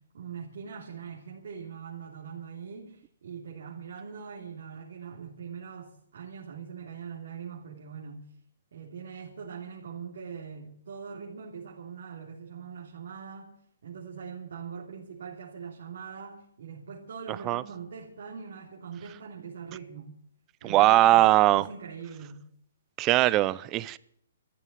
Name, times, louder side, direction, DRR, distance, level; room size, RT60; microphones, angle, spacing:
voice 1, 0.1-8.3 8.7-13.6 13.8-20.1 20.6-21.3 21.5-22.4, right 6 dB, 70° right, 3.4 m, -42 dB
voice 2, 20.6-21.7 23.0-24.0, right 16 dB, 25° right, 0.6 m, -21 dB
14.0 x 9.9 x 9.3 m
hypercardioid pair, 145°, 0 cm